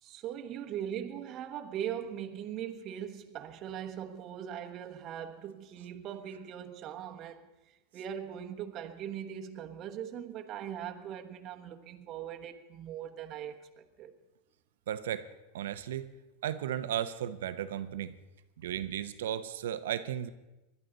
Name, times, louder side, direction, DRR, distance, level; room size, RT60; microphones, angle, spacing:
voice 1, 0.0-7.5 7.9-14.1, right 9 dB, 40° right, 1.2 m, -40 dB
voice 2, 14.9-15.3 15.5-16.1 16.4-18.1 18.6-20.3, right 10 dB, 85° right, 0.9 m, -35 dB
20.5 x 12.0 x 4.0 m
supercardioid pair, 125°, 0 cm